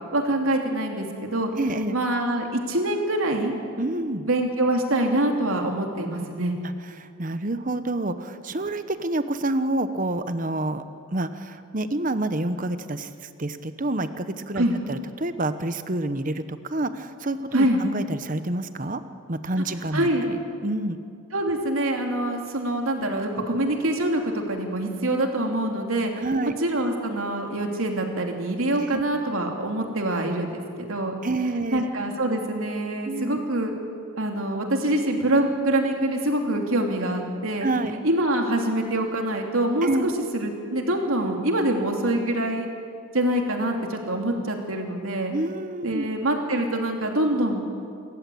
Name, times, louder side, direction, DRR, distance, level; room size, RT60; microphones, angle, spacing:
voice 1, 0.1-1.5 1.9-3.5 4.3-6.6 14.6-14.7 17.5-17.8 19.9-20.3 21.3-26.2 26.6-30.6 30.9-31.1 31.7-33.7 34.2-37.7 38.0-42.7 43.1-45.3 45.8-47.6, right 1 dB, 80° right, 2 dB, 3.0 m, -25 dB
voice 2, 1.6-2.0 3.8-4.3 7.0-10.8 11.1-19.0 19.3-21.0 26.2-26.5 28.8-29.0 31.2-31.9 33.0-33.4 37.6-37.9 39.8-40.1 45.3-46.1, right 2 dB, 40° right, 11 dB, 1.0 m, -28 dB
26.5 x 14.5 x 8.6 m, 2.4 s
head